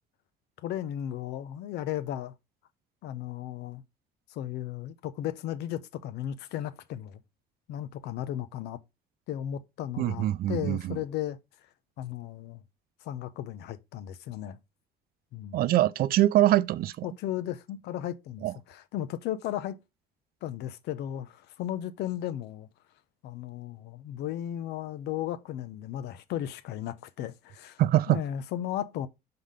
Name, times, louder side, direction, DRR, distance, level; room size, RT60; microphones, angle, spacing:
voice 1, 0.6-2.3 3.0-3.8 4.3-7.2 7.7-8.8 9.3-11.4 12.0-12.6 13.0-14.6 15.3-15.6 17.0-19.8 20.4-22.7 23.2-27.8 28.1-29.1, left 11 dB, 80° left, 0.7 m, -35 dB
voice 2, 10.0-11.0 15.5-17.1 18.4-18.5 27.8-28.2, right 14 dB, 60° right, 0.4 m, -24 dB
5.6 x 3.9 x 5.0 m
cardioid pair, 110°, 17 cm